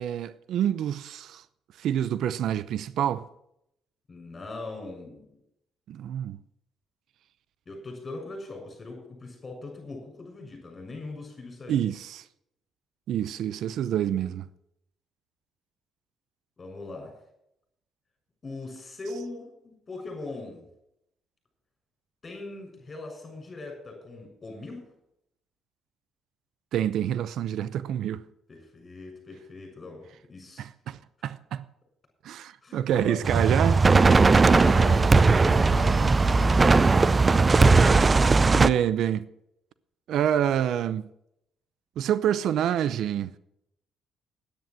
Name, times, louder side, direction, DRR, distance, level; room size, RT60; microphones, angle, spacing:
voice 1, 0.0-1.4 1.8-3.2 5.9-6.4 11.7-12.2 13.1-14.4 26.7-28.2 30.6-31.0 31.2-31.6 32.2-33.8 38.5-39.3 40.1-41.0 42.0-43.3, right 10 dB, 70° right, 0.6 m, -27 dB
voice 2, 4.1-5.3 7.7-11.9 16.6-17.1 18.4-20.7 22.2-24.8 28.5-30.6 32.6-33.2 34.4-38.1, left 2 dB, 30° left, 6.5 m, -40 dB
sound 1, 33.2-38.7, right 4 dB, 30° right, 0.5 m, -18 dB
10.5 x 9.4 x 7.6 m
cardioid pair, 80°, 0 cm